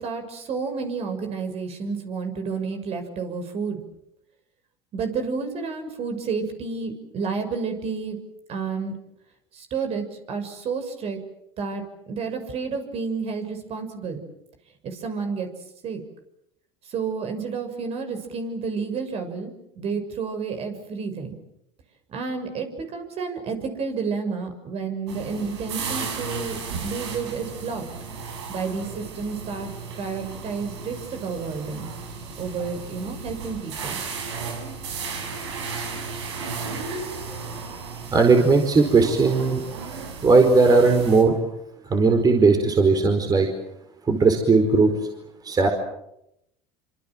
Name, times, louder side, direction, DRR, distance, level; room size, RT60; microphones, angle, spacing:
voice 1, 0.0-3.8 4.9-8.2 8.5-9.0 9.5-11.2 11.6-14.2 14.8-15.5 15.8-16.0 16.9-21.3 22.1-27.8 28.5-29.7 30.0-31.9 32.4-34.0, right 5 dB, 45° right, 7 dB, 6.5 m, -30 dB
sound 1, 25.1-41.2, right 5 dB, 90° right, 6.0 m, -34 dB
voice 2, 38.1-39.6 40.2-41.4 41.9-43.5 44.1-44.9 45.4-45.7, right 4 dB, 30° right, 4 dB, 4.7 m, -17 dB
26.5 x 26.0 x 7.7 m, 0.81 s
hypercardioid pair, 90°, 14 cm